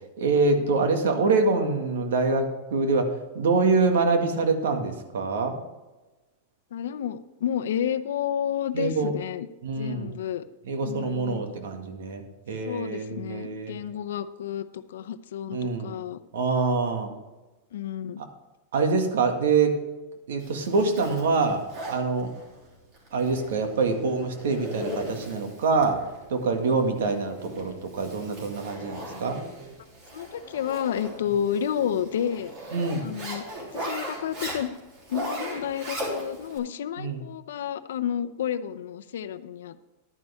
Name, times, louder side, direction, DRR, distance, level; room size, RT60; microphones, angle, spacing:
voice 1, 0.2-5.5 8.7-9.1 9.6-10.1 10.7-13.7 15.5-15.9 16.3-17.1 18.2-18.3 18.7-19.7 20.3-21.6 21.9-22.3 23.1-26.0 26.3-29.4 32.7-33.0 37.0-37.2, right 4 dB, 90° right, 5 dB, 1.9 m, -25 dB
voice 2, 6.7-9.5 9.8-10.4 10.8-11.5 12.7-16.2 17.7-18.2 30.1-32.5 33.0-33.4 33.7-34.7 35.1-39.8, left 9 dB, 85° left, 11 dB, 0.6 m, -30 dB
Zipper (clothing), 20.4-36.6, right 1 dB, 35° right, 3.3 m, -38 dB
11.0 x 9.8 x 3.5 m, 1.1 s
supercardioid pair, 165°, 0 cm